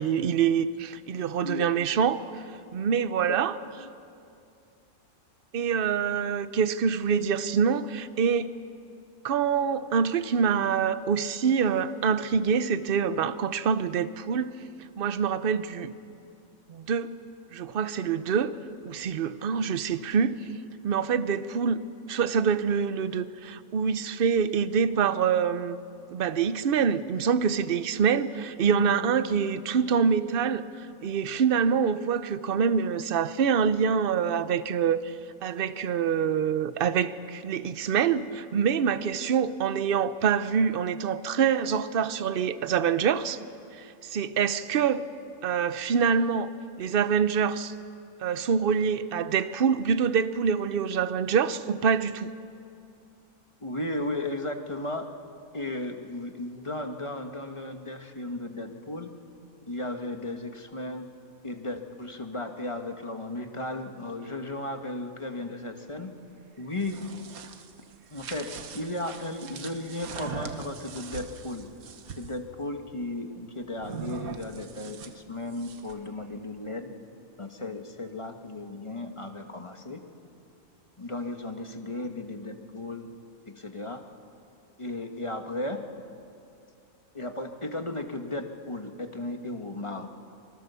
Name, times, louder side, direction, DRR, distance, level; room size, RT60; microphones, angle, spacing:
voice 1, 0.0-2.4 2.7-3.5 5.5-8.5 9.2-14.6 15.0-15.9 16.7-17.1 17.5-18.5 18.8-20.4 20.8-21.8 22.1-25.8 26.1-35.1 35.4-43.4 43.8-45.1 45.4-46.5 46.8-47.7 48.2-52.3, right 6 dB, 50° right, 0.7 m, -25 dB
Keyboard (musical), 28.7-31.4, left 4 dB, 75° left, 1.7 m, -45 dB
voice 2, 53.6-55.1 55.5-59.1 59.7-61.1 61.4-66.1 66.6-67.0 68.1-71.7 72.1-76.9 77.4-80.0 81.0-83.1 83.5-84.0 84.8-85.8 87.1-90.1, left 2 dB, 20° left, 1.3 m, -35 dB
sound 1, 66.6-72.4 73.8-76.1, right 7 dB, 70° right, 1.5 m, -41 dB
26.0 x 20.0 x 6.9 m
omnidirectional pair, 1.6 m